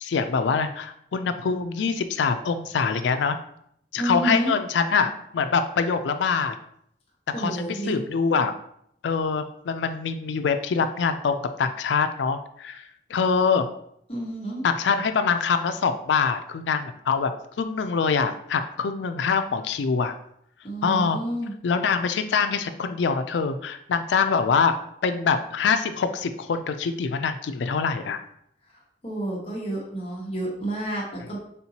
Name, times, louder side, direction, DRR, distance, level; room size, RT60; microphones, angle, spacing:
voice 1, 0.0-3.4 3.9-6.5 7.4-8.6 9.0-12.8 13.1-13.7 14.6-17.3 17.6-20.1 20.8-21.2 21.6-24.7 25.0-28.2, left 5 dB, 85° left, 9 dB, 0.4 m, -24 dB
voice 2, 4.0-4.5 7.3-8.0 14.1-14.6 20.6-21.5 29.0-31.4, right 1 dB, 35° left, -3 dB, 1.0 m, -29 dB
4.3 x 3.7 x 2.8 m, 0.70 s
head